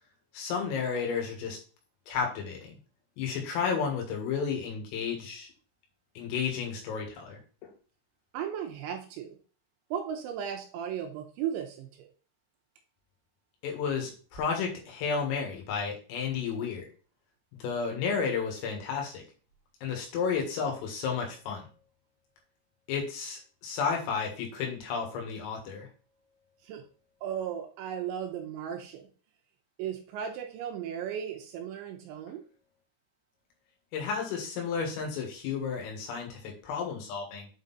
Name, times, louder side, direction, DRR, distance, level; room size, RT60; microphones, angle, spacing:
voice 1, 0.3-1.6 2.1-2.7 3.2-5.5 6.2-7.7 13.6-16.9 17.6-19.2 19.8-21.7 22.9-25.9 33.9-37.5, left 6 dB, 85° left, 1 dB, 4.4 m, -32 dB
voice 2, 8.3-9.4 9.9-12.1 26.6-26.8 27.2-29.1 29.8-32.4, right 9 dB, 80° right, 3 dB, 2.8 m, -36 dB
8.3 x 3.9 x 4.1 m, 0.38 s
omnidirectional pair, 5.8 m